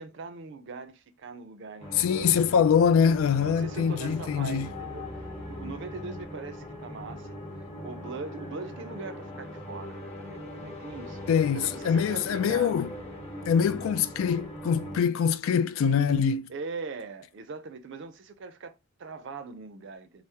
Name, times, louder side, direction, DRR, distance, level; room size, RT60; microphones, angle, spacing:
voice 1, 0.0-2.3 3.4-7.4 7.8-11.2 11.5-12.8 13.7-13.8 16.5-20.2, right 4 dB, 60° right, 0.4 m, -41 dB
sound 1, 1.8-15.0, left 1 dB, 30° left, 0.9 m, -40 dB
voice 2, 2.0-4.7 11.3-12.9 13.5-16.5, left 7 dB, 80° left, 0.3 m, -24 dB
3.3 x 2.0 x 2.7 m
head